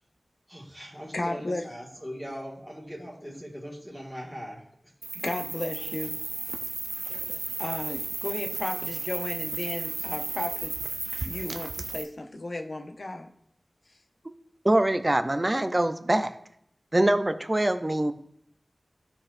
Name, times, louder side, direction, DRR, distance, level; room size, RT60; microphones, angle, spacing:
voice 1, 0.5-4.6, equal, 5° left, -3 dB, 1.8 m, -40 dB
voice 2, 1.1-1.6 5.1-6.2 7.6-10.7 11.2-13.3, left 2 dB, 65° left, 4 dB, 0.7 m, -34 dB
sound 1, 5.0-12.0, right 3 dB, 85° right, 0.5 m, -34 dB
voice 3, 14.6-16.3 16.9-18.1, right 1 dB, 30° right, 9 dB, 0.6 m, -23 dB
13.0 x 4.4 x 2.6 m, 0.71 s
wide cardioid pair, 45°, 0 cm